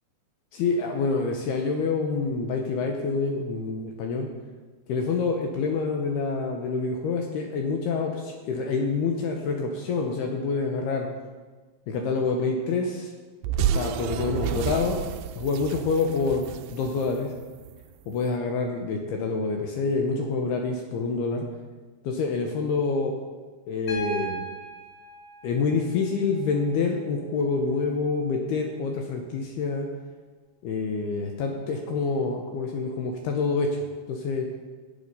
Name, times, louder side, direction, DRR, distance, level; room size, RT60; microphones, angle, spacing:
voice 1, 0.5-4.3 4.9-11.1 11.9-13.1 13.7-15.0 15.4-17.3 18.1-21.5 22.0-23.2 23.7-24.4 25.4-29.9 30.6-33.8 34.1-34.5, left 4 dB, 75° left, 2 dB, 2.8 m, -27 dB
sound 1, 13.4-17.8, right 9 dB, 85° right, 2.7 m, -30 dB
Piano, 23.9-27.9 29.4-29.5, right 3 dB, 35° left, 4.3 m, -39 dB
14.5 x 8.5 x 5.6 m, 1.3 s
omnidirectional pair, 5.0 m